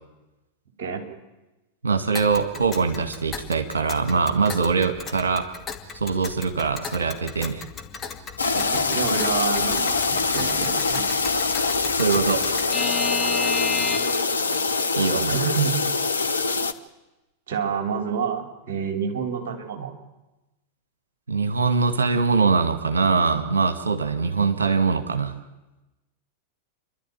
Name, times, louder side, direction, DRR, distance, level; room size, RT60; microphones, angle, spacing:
voice 1, 1.8-5.5 5.9-7.6 11.9-12.6 15.0-15.4 21.3-25.4, right 4 dB, 70° right, 8 dB, 2.3 m, -23 dB
Alarm / Clock, 2.2-14.3, left 5 dB, 20° left, 2.3 m, -34 dB
sound 1, 8.4-16.7, left 4 dB, 75° left, 1.0 m, -24 dB
voice 2, 8.5-11.0 14.5-14.6 15.1-15.7 17.5-19.9, right 6 dB, 55° right, 4 dB, 4.2 m, -28 dB
28.5 x 12.0 x 9.2 m, 1.0 s
figure-of-eight pair, 90°, 0 cm